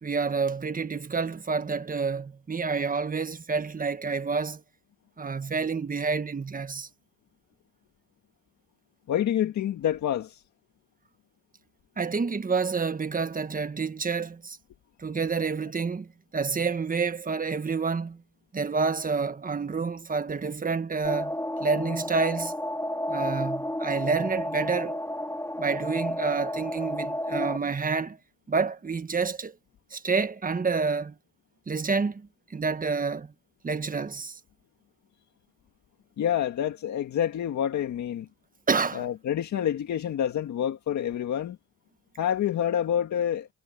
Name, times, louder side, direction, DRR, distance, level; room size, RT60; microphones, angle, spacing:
voice 1, 0.0-4.6 5.2-6.9 12.0-14.6 15.0-16.1 16.3-18.2 18.5-21.3 21.6-22.5 23.1-25.0 25.6-28.2 28.5-29.5 29.9-31.1 31.7-32.3 32.5-33.3 33.6-34.3 38.7-39.0, right 4 dB, 30° right, 1.5 m, -28 dB
voice 2, 9.1-10.4 36.2-38.3 38.9-41.6 42.2-43.5, left 10 dB, 65° left, 2.0 m, -27 dB
sound 1, 21.0-27.6, left 1 dB, 10° left, 3.1 m, -31 dB
cardioid pair, 90°, 30 cm